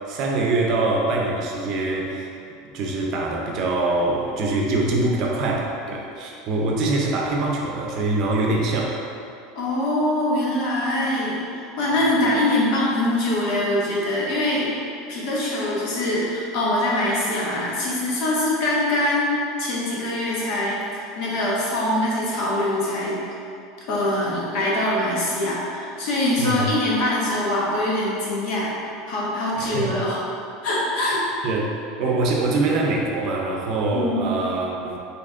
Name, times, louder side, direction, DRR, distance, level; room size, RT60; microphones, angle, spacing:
voice 1, 0.0-2.3 2.7-8.9 26.4-26.7 29.6-30.0 31.4-31.7 32.0-35.0, right 2 dB, 50° right, -1 dB, 0.6 m, -24 dB
voice 2, 9.5-14.7 15.1-23.2 23.9-28.7 29.1-30.2 30.6-31.2 33.9-34.3, left 1 dB, 60° left, -5 dB, 1.0 m, -23 dB
3.3 x 2.9 x 3.6 m, 2.6 s
supercardioid pair, 130°, 0 cm